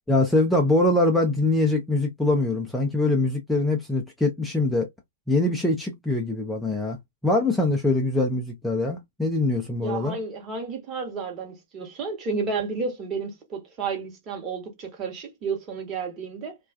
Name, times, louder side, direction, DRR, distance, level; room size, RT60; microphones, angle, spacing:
voice 1, 0.1-4.9 5.3-7.0 7.2-10.2, left 2 dB, 5° left, 0.4 m, -23 dB
voice 2, 9.8-16.6, right 4 dB, 30° right, 1.0 m, -31 dB
2.3 x 2.2 x 2.3 m
figure-of-eight pair, 115°, 0 cm